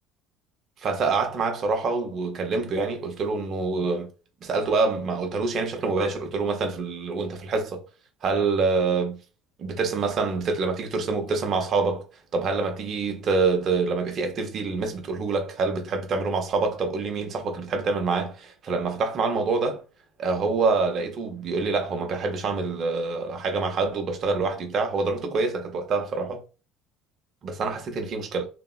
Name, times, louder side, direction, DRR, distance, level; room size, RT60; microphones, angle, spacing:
voice 1, 0.8-4.1 4.4-7.8 8.2-9.2 9.6-12.0 12.3-19.8 20.2-26.4 27.4-28.5, right 4 dB, 50° right, 0.6 m, -26 dB
2.7 x 2.0 x 2.3 m
hypercardioid pair, 75°, 0 cm